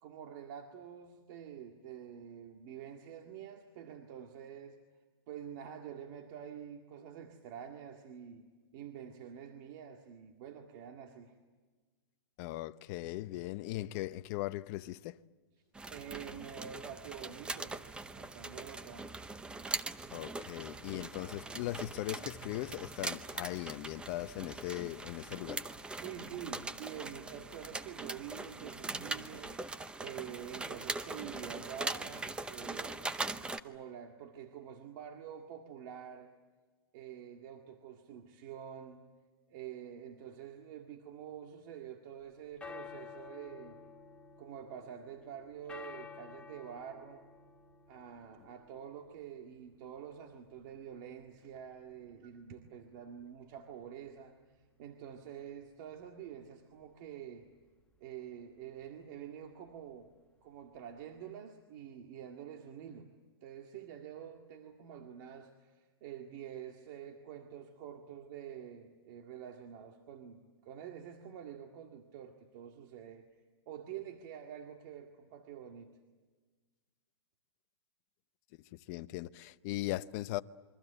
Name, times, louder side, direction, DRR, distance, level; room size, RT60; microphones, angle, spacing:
voice 1, 0.0-4.8 5.3-8.4 8.7-11.3 15.9-17.8 18.1-19.1 25.9-29.5 30.0-33.0 33.6-36.3 36.9-39.0 39.5-43.8 44.4-47.2 47.9-57.5 58.0-60.1 60.4-63.1 63.4-73.3 73.7-76.0, right 9 dB, 45° right, 2.0 m, -47 dB
voice 2, 12.4-15.2 20.1-25.6 78.7-80.4, left 16 dB, 40° left, 0.8 m, -39 dB
sound 1, 15.7-33.6, right 3 dB, 5° right, 0.7 m, -41 dB
sound 2, 42.2-61.3, left 5 dB, 10° left, 1.2 m, -55 dB
28.0 x 23.5 x 8.1 m
hypercardioid pair, 145°, 14 cm